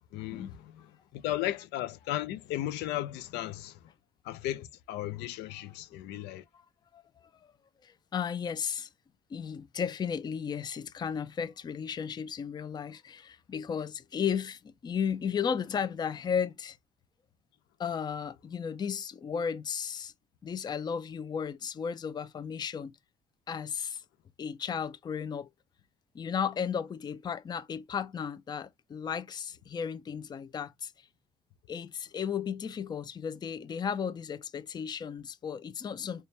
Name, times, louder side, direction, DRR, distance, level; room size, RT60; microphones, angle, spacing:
voice 1, 0.1-3.9 4.2-6.4, left 14 dB, 85° left, 0.5 m, -35 dB
voice 2, 7.8-8.9 9.3-16.8 17.8-20.1 20.4-22.9 23.5-24.0 24.4-25.5 26.1-30.9 31.7-36.3, left 7 dB, 25° left, 0.4 m, -34 dB
4.2 x 2.3 x 3.1 m
cardioid pair, 110°, 17 cm